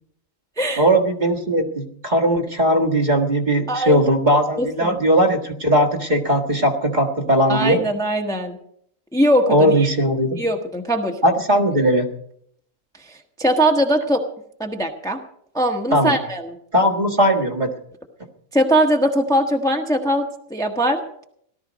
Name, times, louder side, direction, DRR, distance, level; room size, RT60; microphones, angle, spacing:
voice 1, 0.8-7.8 9.5-10.4 11.2-12.1 15.9-16.2 16.7-17.7, equal, 35° right, 2 dB, 1.8 m, -18 dB
voice 2, 4.6-5.0 7.5-8.6 9.1-9.9 10.4-11.2 13.4-14.2 14.6-15.2 15.5-16.6 18.5-21.2, right 1 dB, 5° left, 2 dB, 1.2 m, -21 dB
18.0 x 12.5 x 5.1 m, 0.69 s
omnidirectional pair, 1.4 m